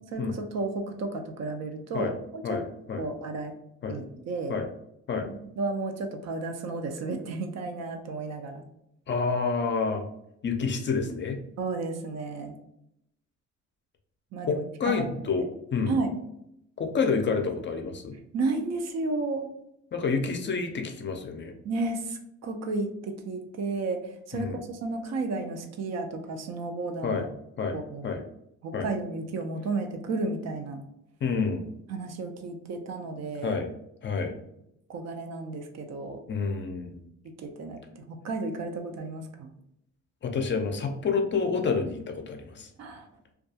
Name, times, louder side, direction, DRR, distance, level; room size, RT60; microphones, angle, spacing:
voice 1, 0.1-2.6 3.0-3.5 3.9-4.5 5.6-8.6 11.6-12.6 14.3-15.1 15.9-16.2 18.3-19.5 21.6-27.3 27.7-28.1 28.6-30.8 31.9-33.6 34.9-36.2 37.4-39.5 42.8-43.1, right 3 dB, 60° right, 5 dB, 0.5 m, -32 dB
voice 2, 2.4-3.0 3.8-4.0 4.5-4.7 5.1-5.3 9.1-10.0 10.4-11.4 14.5-15.5 15.7-16.0 16.8-18.1 19.9-21.5 24.3-24.6 27.0-27.3 27.6-28.2 28.7-28.9 31.2-31.7 33.4-33.7 34.0-34.3 36.3-37.0 40.2-42.7, left 5 dB, 40° left, 4 dB, 0.4 m, -28 dB
2.3 x 2.2 x 2.7 m, 0.79 s
cardioid pair, 90°, 30 cm